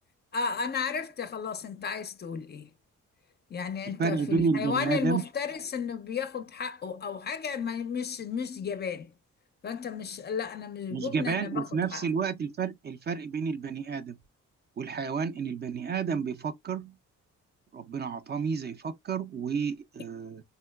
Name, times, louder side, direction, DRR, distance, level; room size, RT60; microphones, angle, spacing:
voice 1, 0.3-2.7 3.5-9.1 9.6-12.1, left 6 dB, 35° left, 0.4 m, -33 dB
voice 2, 4.0-5.3 10.9-14.2 14.8-17.0 17.7-20.4, right 5 dB, 35° right, 0.4 m, -30 dB
3.7 x 2.0 x 2.2 m
cardioid pair, 90°, 30 cm